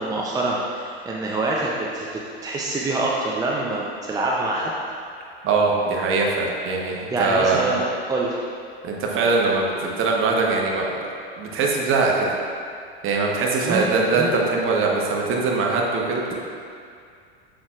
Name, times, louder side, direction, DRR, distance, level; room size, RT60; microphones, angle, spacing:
voice 1, 0.0-4.7 7.1-8.4 13.7-13.9 14.2-14.3, right 2 dB, 10° right, -3 dB, 0.6 m, -25 dB
voice 2, 5.4-7.7 8.8-10.9 11.4-12.3 13.0-16.4, right 3 dB, 40° right, -1 dB, 1.2 m, -22 dB
7.6 x 6.4 x 2.5 m, 2.3 s
hypercardioid pair, 85°, 32 cm